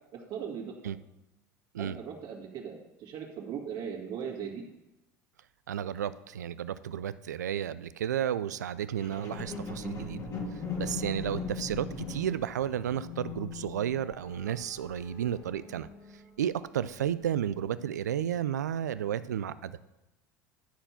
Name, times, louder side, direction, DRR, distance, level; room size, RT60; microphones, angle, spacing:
voice 1, 0.1-0.7 1.8-4.6, right 7 dB, 55° right, 0 dB, 2.1 m, -39 dB
voice 2, 5.7-10.2 10.5-15.9 16.4-19.8, right 10 dB, 90° right, 15 dB, 0.4 m, -32 dB
sound 1, 9.0-16.4 17.0-17.1, left 4 dB, 40° left, 1.9 m, -40 dB
11.5 x 4.4 x 5.7 m, 0.96 s
hypercardioid pair, 80°, 9 cm